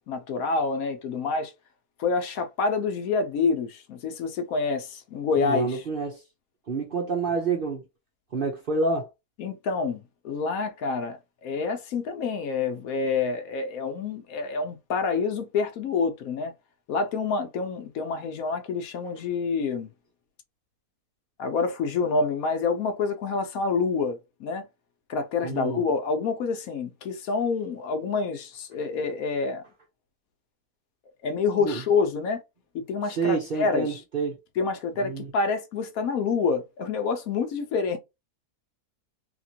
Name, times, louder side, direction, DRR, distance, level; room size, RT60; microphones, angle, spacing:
voice 1, 0.1-1.5 2.0-5.8 9.4-16.5 16.9-19.9 21.4-24.7 25.1-29.6 31.2-32.4 32.7-34.0 34.6-38.0, left 4 dB, 70° left, 1.0 m, -27 dB
voice 2, 5.3-6.2 6.7-7.8 8.3-9.1 25.4-25.8 31.6-31.8 33.1-34.4 35.0-35.3, right 4 dB, 50° right, 0.7 m, -28 dB
2.9 x 2.9 x 2.7 m
omnidirectional pair, 1.6 m